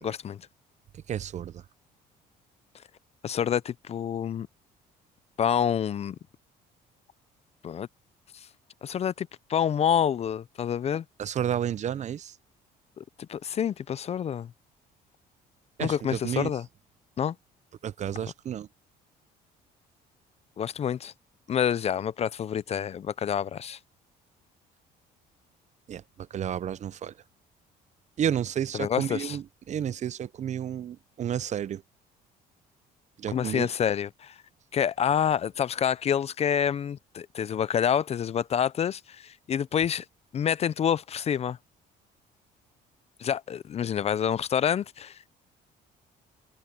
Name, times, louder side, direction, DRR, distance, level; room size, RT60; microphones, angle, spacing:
voice 1, 0.0-0.5 3.2-4.5 5.4-6.2 7.6-7.9 8.3-8.5 8.8-11.0 13.0-14.5 15.8-16.6 17.2-17.4 20.6-21.1 21.5-23.8 28.8-29.4 33.3-34.4 34.7-40.0 40.3-41.6 43.2-45.4, left 8 dB, 40° left, 0.5 m, -27 dB
voice 2, 0.9-1.6 11.2-12.4 15.8-16.5 17.8-18.7 25.9-27.2 28.2-31.8 33.2-33.7, right 9 dB, 45° right, 0.6 m, -31 dB
cardioid pair, 110°, 17 cm